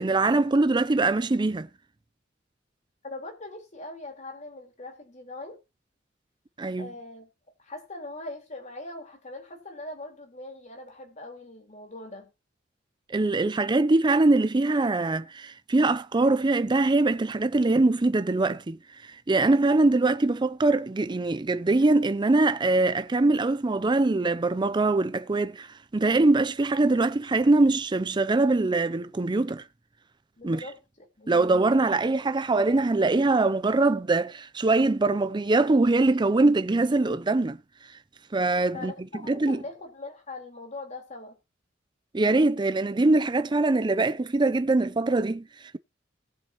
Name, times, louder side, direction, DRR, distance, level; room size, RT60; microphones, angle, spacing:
voice 1, 0.0-1.7 6.6-6.9 13.1-25.7 25.9-29.6 30.4-30.6 31.3-37.6 38.3-38.9 39.3-39.6 42.1-45.8, right 2 dB, 25° right, 0.5 m, -23 dB
voice 2, 3.0-5.6 6.8-7.3 7.6-12.3 30.4-31.5 38.7-41.4, left 2 dB, 40° left, 4.0 m, -41 dB
19.5 x 7.5 x 2.9 m
head